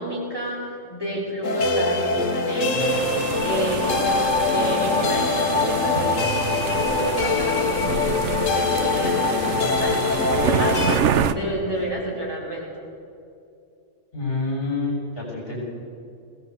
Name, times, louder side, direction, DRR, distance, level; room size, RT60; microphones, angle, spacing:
voice 1, 0.0-12.8, right 1 dB, 20° right, -5 dB, 4.8 m, -30 dB
sound 1, 1.4-11.0, left 4 dB, 85° left, 1.5 m, -23 dB
sound 2, 2.5-11.9, left 1 dB, 30° left, 2.9 m, -38 dB
sound 3, 2.8-11.3, right 7 dB, 70° right, 1.1 m, -28 dB
voice 2, 14.1-15.6, left 3 dB, 45° left, -2 dB, 7.6 m, -27 dB
20.5 x 18.5 x 8.2 m, 2.5 s
omnidirectional pair, 1.3 m